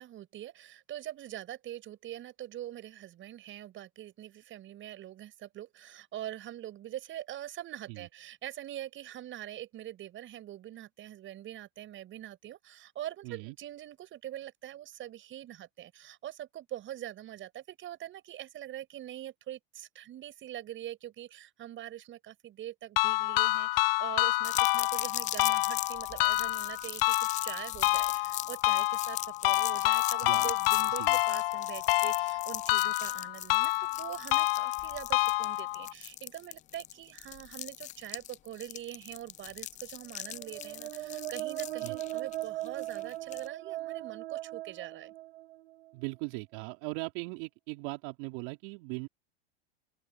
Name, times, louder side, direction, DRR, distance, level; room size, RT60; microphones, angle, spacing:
voice 1, 0.0-45.1, right 12 dB, 40° right, 7.2 m, -44 dB
voice 2, 13.2-13.6 30.2-30.5 30.9-31.2 41.8-42.0 45.9-49.1, right 28 dB, 55° right, 3.9 m, -39 dB
sound 1, 23.0-35.9, left 22 dB, 65° left, 0.9 m, -28 dB
sound 2, 24.4-43.5, left 13 dB, 25° left, 0.4 m, -40 dB
sound 3, 40.1-45.9, right 16 dB, 80° right, 1.9 m, -39 dB
open air
hypercardioid pair, 110°, 32 cm